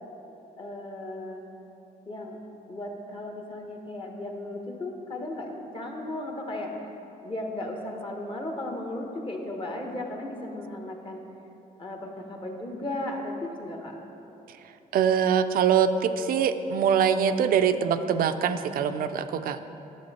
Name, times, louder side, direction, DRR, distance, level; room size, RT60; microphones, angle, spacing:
voice 1, 0.6-1.4 2.0-2.4 2.7-6.9 7.2-11.2 11.8-14.0, left 1 dB, 35° left, 1 dB, 1.4 m, -35 dB
voice 2, 14.9-19.8, right 7 dB, 70° right, 10 dB, 0.5 m, -23 dB
10.5 x 7.1 x 4.3 m, 3.0 s
cardioid pair, 95°, 15 cm